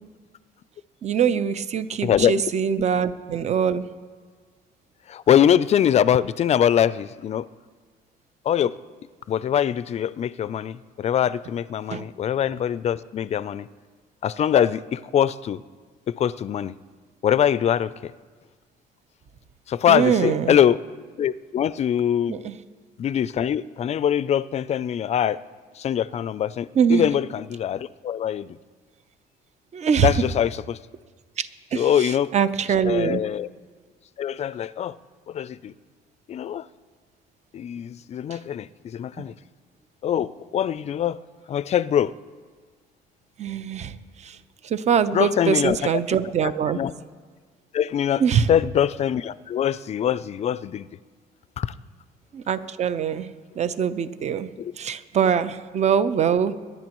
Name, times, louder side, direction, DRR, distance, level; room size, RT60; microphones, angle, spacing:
voice 1, 1.0-3.9 11.9-12.1 19.9-20.6 22.3-22.6 26.7-27.1 29.7-30.1 31.4-33.2 38.3-38.4 39.2-39.3 43.4-44.4 44.6-46.8 48.2-48.5 52.3-54.5 54.8-56.5, right 7 dB, 40° right, 12 dB, 0.7 m, -23 dB
voice 2, 2.0-2.5 5.1-7.5 8.5-8.8 9.3-13.7 14.2-15.6 16.1-16.7 17.2-18.1 19.7-20.8 21.2-22.4 23.0-25.4 25.8-28.6 30.0-30.8 31.7-32.3 32.9-33.5 34.2-35.0 35.3-35.7 36.3-36.6 37.5-39.3 40.0-41.2 41.5-42.1 45.1-45.9 46.7-46.9 47.7-48.2 48.5-50.9 51.6-51.7 54.6-54.7, left 9 dB, 40° left, 17 dB, 0.4 m, -23 dB
24.0 x 10.5 x 3.1 m, 1.5 s
cardioid pair, 110°, 17 cm